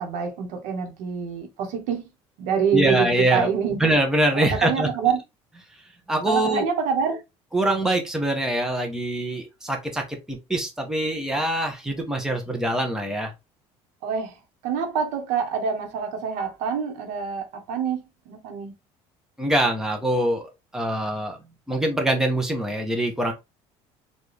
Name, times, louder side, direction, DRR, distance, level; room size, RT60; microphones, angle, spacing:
voice 1, 0.0-2.1 2.4-3.8 4.3-5.2 6.2-7.2 14.0-14.4 14.6-18.7, right 7 dB, 85° right, 1.4 m, -26 dB
voice 2, 2.7-3.5 3.8-4.9 6.1-6.7 7.5-13.3 19.4-21.4 21.7-23.3, right 1 dB, 5° right, 1.1 m, -24 dB
4.4 x 2.7 x 3.4 m
cardioid pair, 120°, 12 cm